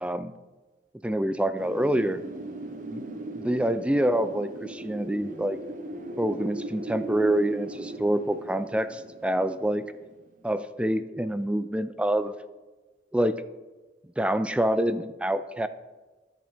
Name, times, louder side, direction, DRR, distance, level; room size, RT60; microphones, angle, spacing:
voice 1, 0.0-0.3 1.0-2.2 2.9-3.0 3.4-5.6 6.2-9.9 10.4-12.3 13.1-13.4 14.2-15.7, right 1 dB, 5° right, 12 dB, 0.3 m, -26 dB
Wind, 1.6-10.3, right 2 dB, 45° right, 0.9 m, -38 dB
13.5 x 6.5 x 4.0 m, 1.2 s
head